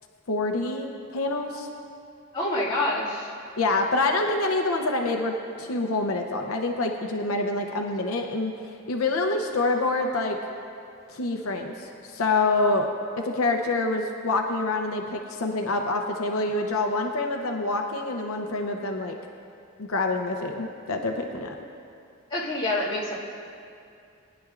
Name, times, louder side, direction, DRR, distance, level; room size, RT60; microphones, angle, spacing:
voice 1, 0.3-1.7 3.6-10.4 11.1-12.9 13.2-19.2 19.8-21.6, left 2 dB, 85° left, 3 dB, 0.7 m, -26 dB
voice 2, 2.3-3.3 22.3-23.1, left 1 dB, 25° left, -9 dB, 2.4 m, -27 dB
19.5 x 10.0 x 2.5 m, 2.5 s
head